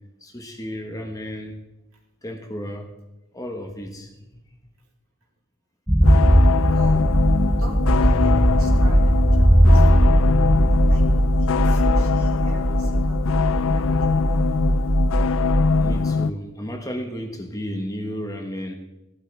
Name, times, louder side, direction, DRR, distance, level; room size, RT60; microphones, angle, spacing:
voice 1, 0.2-1.6 2.2-2.9 3.3-4.4 15.8-18.7, equal, 15° left, 4 dB, 1.3 m, -33 dB
sound 1, 5.9-16.0, equal, 5° right, 0.4 m, -18 dB
sound 2, 6.0-16.3, left 5 dB, 70° left, 0.4 m, -23 dB
voice 2, 6.7-7.1 7.6-10.2 10.9-14.6, right 1 dB, 80° right, -2 dB, 3.4 m, -43 dB
16.5 x 12.0 x 3.4 m, 0.98 s
head